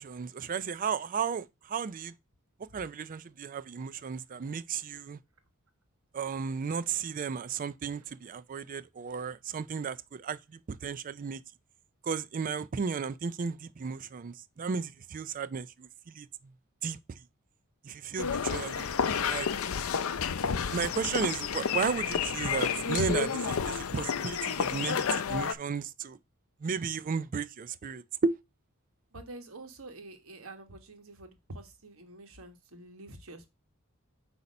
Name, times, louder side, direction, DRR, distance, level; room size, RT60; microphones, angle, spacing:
voice 1, 0.0-2.1 2.7-5.2 6.1-11.4 12.0-16.3 16.8-17.0 17.8-19.5 20.7-26.2 26.6-28.4, right 5 dB, 40° right, 0.4 m, -34 dB
sound 1, 18.2-25.5, left 6 dB, 70° left, 0.5 m, -30 dB
voice 2, 29.1-33.5, right 2 dB, 70° right, 1.3 m, -48 dB
8.2 x 2.8 x 5.2 m
head